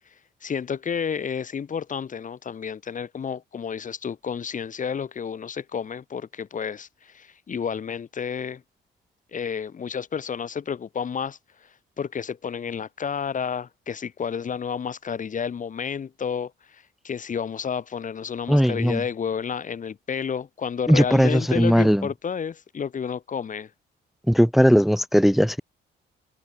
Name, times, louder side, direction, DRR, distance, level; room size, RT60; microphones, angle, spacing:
voice 1, 0.4-8.6 9.3-11.4 12.0-23.7, left 7 dB, 40° left, 1.1 m, -31 dB
voice 2, 18.5-19.0 20.9-22.1 24.3-25.6, equal, ahead, 0.8 m, -18 dB
cardioid pair, 90°, 20 cm